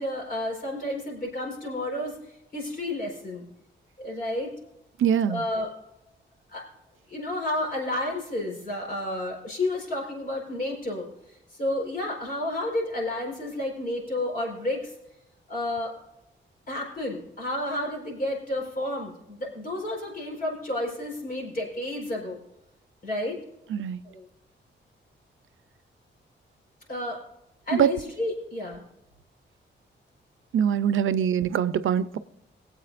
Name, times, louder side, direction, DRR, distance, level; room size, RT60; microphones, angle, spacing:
voice 1, 0.0-2.1 2.5-3.5 4.0-4.5 5.3-5.7 6.5-6.7 7.1-11.1 11.5-14.9 15.5-15.9 16.7-22.4 23.0-23.4 24.0-24.2 26.9-27.2 27.7-28.8, left 1 dB, 45° left, -1 dB, 4.3 m, -31 dB
voice 2, 5.0-5.4 23.7-24.0 27.7-27.9 30.5-32.2, right 8 dB, 90° right, 14 dB, 0.6 m, -23 dB
22.0 x 8.1 x 2.5 m, 0.85 s
wide cardioid pair, 165°, 20 cm